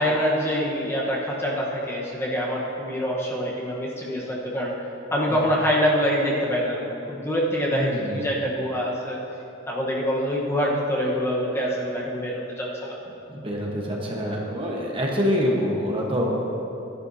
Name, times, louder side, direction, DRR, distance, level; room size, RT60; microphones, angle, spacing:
voice 1, 0.0-4.7 5.1-9.2 9.7-13.0, equal, 15° left, -4 dB, 1.1 m, -25 dB
voice 2, 7.7-8.2 13.3-16.3, equal, 30° right, -2 dB, 1.2 m, -26 dB
13.5 x 10.5 x 2.8 m, 3.0 s
head